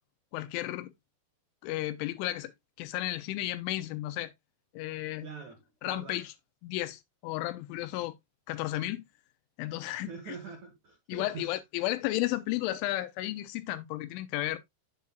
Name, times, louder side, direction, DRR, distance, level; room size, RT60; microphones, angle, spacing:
voice 1, 0.3-0.9 1.6-2.5 2.8-4.3 4.7-5.3 5.8-6.3 6.6-8.2 8.5-9.0 9.6-10.4 11.1-14.6, left 16 dB, 90° left, 3.2 m, -33 dB
voice 2, 5.2-6.2 9.9-11.5, right 5 dB, 65° right, 1.8 m, -45 dB
8.5 x 7.4 x 2.3 m
omnidirectional pair, 5.4 m